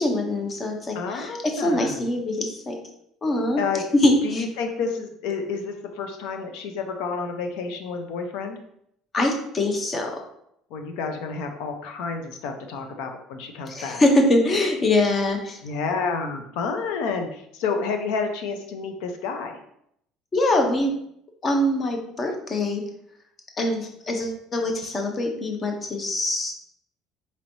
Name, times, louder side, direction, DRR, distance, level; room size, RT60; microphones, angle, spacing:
voice 1, 0.0-2.8 3.2-3.6 4.0-4.4 9.1-10.2 13.7-15.6 20.3-20.9 21.4-22.8 23.6-26.5, left 1 dB, 25° left, 3 dB, 0.6 m, -23 dB
voice 2, 0.9-2.1 3.6-3.8 4.2-8.6 10.7-14.0 15.6-19.6, left 5 dB, 80° left, 5 dB, 0.6 m, -30 dB
4.2 x 3.1 x 2.6 m, 0.73 s
cardioid pair, 150°, 0 cm